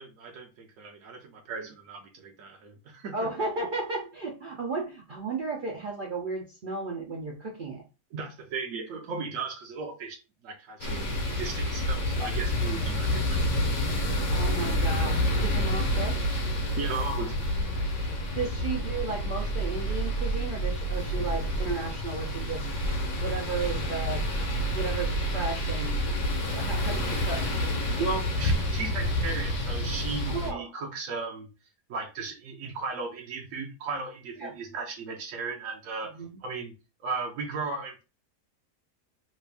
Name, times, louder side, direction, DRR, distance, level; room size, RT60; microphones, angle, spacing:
voice 1, 0.0-3.3 8.1-10.2 10.4-13.4 16.8-17.8 28.0-31.5 31.9-36.7 37.0-38.0, right 4 dB, 70° right, 0.8 m, -36 dB
voice 2, 3.1-7.8 14.3-16.2 18.1-22.7 23.1-24.3 24.7-27.5 30.3-30.6 34.4-34.5 36.1-36.3, right 3 dB, 85° right, 0.4 m, -34 dB
sound 1, 10.8-30.5, equal, 65° left, 1.3 m, -28 dB
3.1 x 2.5 x 3.3 m
omnidirectional pair, 1.7 m